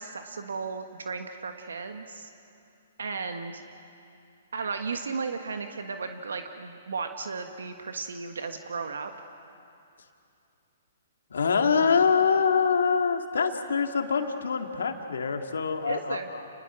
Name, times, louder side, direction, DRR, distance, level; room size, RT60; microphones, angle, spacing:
voice 1, 0.0-2.3 3.0-3.6 4.5-9.1 15.9-16.3, right 4 dB, 80° right, 6 dB, 1.4 m, -35 dB
voice 2, 11.3-16.4, left 6 dB, 80° left, 5 dB, 2.0 m, -25 dB
30.0 x 20.5 x 6.2 m, 2.7 s
hypercardioid pair, 135°, 0 cm